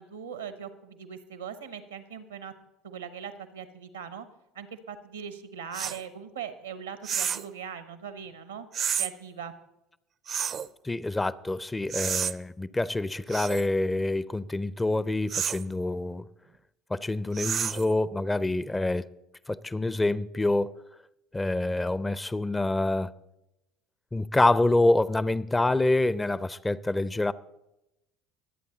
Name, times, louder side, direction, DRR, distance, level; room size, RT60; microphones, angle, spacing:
voice 1, 0.0-2.5 2.8-4.3 4.5-8.7 9.0-9.5, right 7 dB, 85° right, 0.9 m, -40 dB
sound 1, 5.7-6.0 7.0-7.5 8.7-9.1 10.3-10.7 11.9-12.3 13.3-13.7 15.3-15.6 17.3-17.9, right 8 dB, 40° right, 0.5 m, -30 dB
voice 2, 10.8-16.2 16.9-19.1 19.5-20.7 21.3-23.1 24.1-27.3, left 2 dB, 15° left, 0.5 m, -26 dB
22.5 x 8.6 x 3.9 m
figure-of-eight pair, 65°, 0 cm